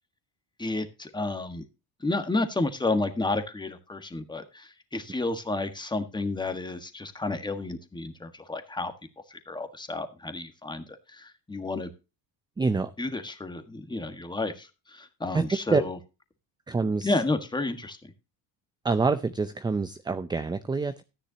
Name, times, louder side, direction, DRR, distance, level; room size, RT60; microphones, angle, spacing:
voice 1, 0.6-1.6 2.0-8.9 9.3-11.9 13.0-16.0 17.0-18.1, left 2 dB, 10° left, 8 dB, 1.5 m, -31 dB
voice 2, 12.6-12.9 15.3-15.4 15.7-15.8 16.7-17.1 18.8-21.0, right 4 dB, 10° right, 11 dB, 0.5 m, -26 dB
13.5 x 9.9 x 2.8 m, 0.29 s
cardioid pair, 140°, 41 cm